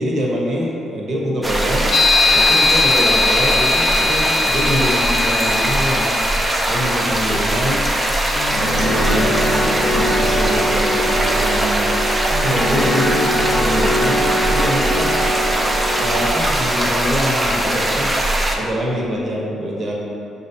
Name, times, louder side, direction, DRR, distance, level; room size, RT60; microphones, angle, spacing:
voice 1, 0.0-1.9 2.3-6.2 6.7-7.8 8.5-11.9 12.4-15.1 15.9-18.1 18.6-19.9, equal, 50° right, -3 dB, 0.9 m, -24 dB
sound 1, 1.4-18.6, right 1 dB, 20° right, 0.5 m, -20 dB
sound 2, 1.9-6.6, left 3 dB, 45° left, 0.3 m, -19 dB
sound 3, 8.3-16.3, equal, 5° left, 1.0 m, -22 dB
6.2 x 2.7 x 2.7 m, 2.5 s
cardioid pair, 90°, 0 cm